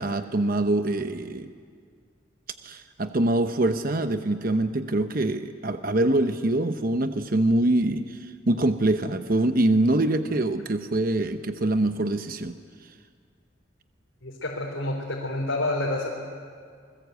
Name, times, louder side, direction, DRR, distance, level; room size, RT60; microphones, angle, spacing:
voice 1, 0.0-1.5 2.6-12.6, right 1 dB, 45° right, 8 dB, 0.9 m, -24 dB
voice 2, 14.2-16.1, left 2 dB, 85° left, -3 dB, 3.8 m, -28 dB
28.0 x 20.5 x 8.3 m, 2.1 s
head